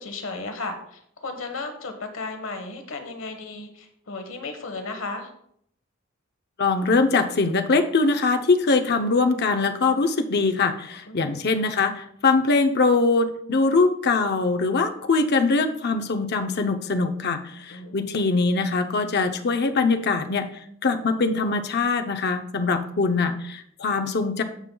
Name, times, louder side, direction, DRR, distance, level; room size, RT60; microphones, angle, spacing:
voice 1, 0.0-5.3 11.1-11.4 17.7-18.1, left 3 dB, 70° left, 6 dB, 1.2 m, -35 dB
voice 2, 6.6-20.5 20.8-24.4, left 3 dB, 50° left, 7 dB, 0.7 m, -22 dB
15.0 x 5.5 x 2.3 m, 0.69 s
head